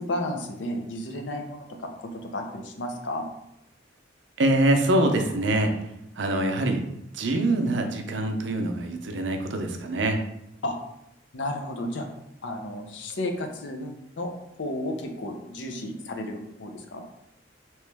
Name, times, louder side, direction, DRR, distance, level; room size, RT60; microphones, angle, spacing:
voice 1, 0.0-3.3 10.6-10.8 11.3-12.1 12.4-14.3 14.6-17.0, left 1 dB, 75° left, 4 dB, 0.6 m, -33 dB
voice 2, 4.4-5.9 6.2-6.8 7.1-10.2, right 1 dB, 70° right, 5 dB, 0.5 m, -24 dB
3.0 x 3.0 x 3.4 m, 0.83 s
head